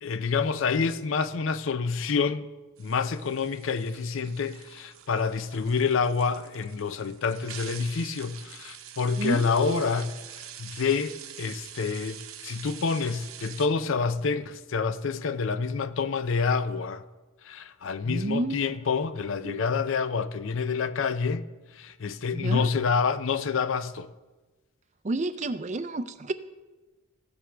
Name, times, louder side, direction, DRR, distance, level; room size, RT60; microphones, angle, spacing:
voice 1, 0.0-2.5 2.8-10.1 10.6-12.2 12.4-17.0 17.5-21.4 21.8-24.1, left 5 dB, 65° left, 0.5 m, -27 dB
sound 1, 2.8-13.7, right 9 dB, 75° right, 0.8 m, -45 dB
voice 2, 9.2-10.0 18.0-18.8 19.4-19.7 22.3-22.7 25.0-26.3, right 2 dB, 35° right, 0.4 m, -30 dB
15.5 x 7.9 x 3.4 m
head